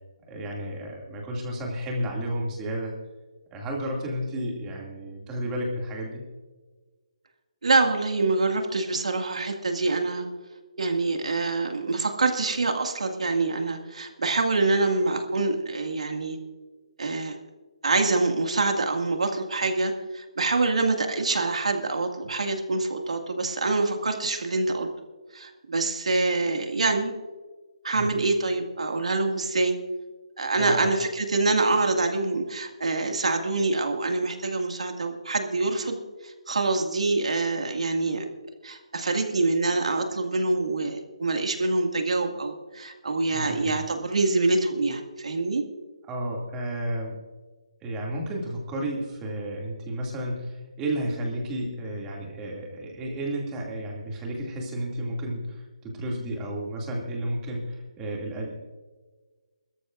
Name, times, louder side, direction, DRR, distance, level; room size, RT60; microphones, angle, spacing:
voice 1, 0.3-3.0 3.5-6.3 27.9-28.1 30.6-30.9 43.3-43.8 46.1-47.2 47.8-58.5, right 1 dB, 15° right, -1 dB, 2.4 m, -32 dB
voice 2, 7.6-10.3 10.8-16.4 17.0-17.3 17.8-24.9 25.3-27.2 27.8-29.8 30.4-38.3 38.6-45.6, right 3 dB, 80° right, 4 dB, 2.1 m, -25 dB
23.0 x 13.5 x 2.5 m, 1.3 s
hypercardioid pair, 165°, 4 cm